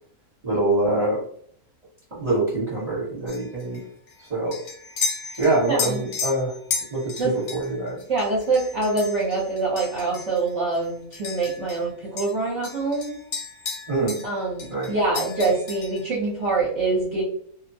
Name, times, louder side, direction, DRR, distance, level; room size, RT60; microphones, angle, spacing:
voice 1, 0.4-1.2 2.1-3.8 4.3-4.6 5.4-6.5 6.9-8.0 13.9-14.2 14.7-14.9, right 2 dB, 30° right, -9 dB, 1.0 m, -24 dB
sound 1, 3.3-11.9 12.2-14.3 14.6-16.1, left 4 dB, 65° left, 1.0 m, -34 dB
voice 2, 5.6-6.0 7.2-7.3 8.1-13.2 14.2-17.2, right 3 dB, 55° right, -6 dB, 1.0 m, -25 dB
2.6 x 2.1 x 2.6 m, 0.62 s
omnidirectional pair, 1.7 m